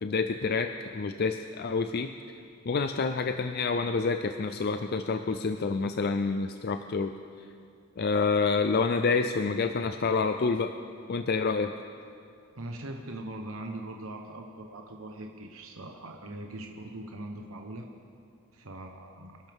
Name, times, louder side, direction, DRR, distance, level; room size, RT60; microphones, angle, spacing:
voice 1, 0.0-2.1 2.7-7.1 8.0-10.7 11.1-11.7, left 4 dB, 50° left, 7 dB, 0.5 m, -28 dB
voice 2, 12.6-17.9 18.5-19.3, right 1 dB, 75° right, 2 dB, 1.1 m, -41 dB
27.0 x 12.0 x 3.6 m, 2.5 s
head